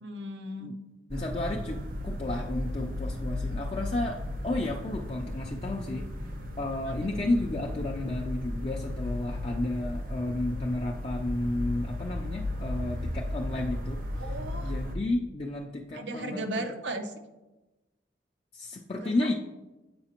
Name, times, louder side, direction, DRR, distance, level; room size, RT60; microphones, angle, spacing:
voice 1, 0.0-0.7 14.2-14.7 15.9-17.1 19.0-19.1, right 1 dB, 85° right, 6 dB, 0.7 m, -35 dB
voice 2, 1.1-4.2 4.4-6.3 6.6-14.3 14.6-16.7 18.5-19.3, left 2 dB, 35° left, 0 dB, 0.4 m, -32 dB
sound 1, 1.1-15.0, left 1 dB, 50° right, 0.7 m, -35 dB
7.7 x 4.9 x 2.9 m, 1.1 s
head